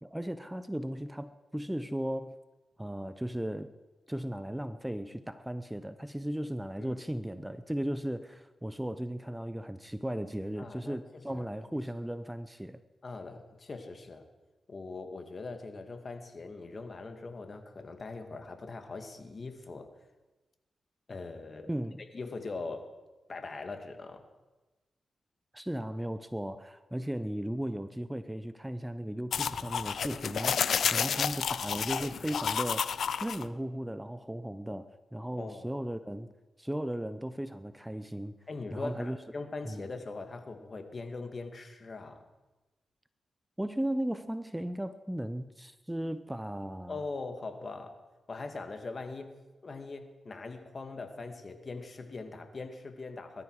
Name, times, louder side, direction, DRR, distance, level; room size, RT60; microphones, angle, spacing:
voice 1, 0.0-2.4 2.8-3.7 4.1-12.8 21.7-22.0 25.5-36.3 36.6-38.3 38.7-39.2 39.6-39.9 43.6-47.0, right 1 dB, 10° right, 12 dB, 0.8 m, -36 dB
voice 2, 10.6-11.0 11.3-11.5 13.0-14.3 14.7-19.9 21.1-21.7 22.1-22.9 23.3-24.2 35.4-35.7 38.5-42.3 46.9-48.0 48.3-49.4 49.6-53.4, left 3 dB, 45° left, 6 dB, 2.1 m, -41 dB
sound 1, 29.3-33.4, left 7 dB, 75° left, 0.6 m, -31 dB
22.0 x 13.0 x 4.9 m, 1.1 s
cardioid pair, 60°, 0 cm